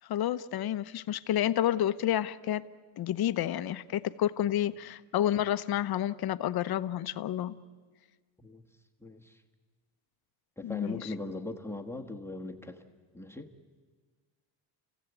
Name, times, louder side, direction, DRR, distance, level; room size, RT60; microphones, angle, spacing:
voice 1, 0.1-2.6 3.0-7.6 10.6-11.1, left 11 dB, 50° left, 13 dB, 0.8 m, -30 dB
voice 2, 9.0-9.4 10.6-12.8 13.1-13.5, left 2 dB, 5° left, 3 dB, 1.3 m, -39 dB
30.0 x 15.5 x 8.1 m, 1.5 s
cardioid pair, 120°, 48 cm